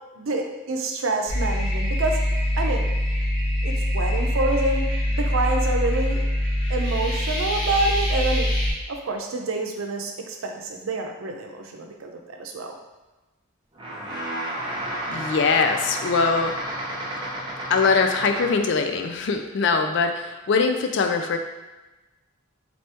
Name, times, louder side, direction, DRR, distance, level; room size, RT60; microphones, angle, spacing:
voice 1, 0.2-2.2 2.6-2.8 3.6-6.2 6.7-8.5 8.9-12.7, right 2 dB, 90° right, 3 dB, 0.6 m, -27 dB
sound 1, 1.3-8.7, equal, 80° left, 1.4 m, -24 dB
sound 2, 13.8-18.7, right 1 dB, 25° right, 0.6 m, -31 dB
voice 2, 15.1-16.5 17.7-21.4, left 4 dB, 60° left, 5 dB, 0.4 m, -22 dB
4.1 x 3.4 x 2.8 m, 1.1 s
head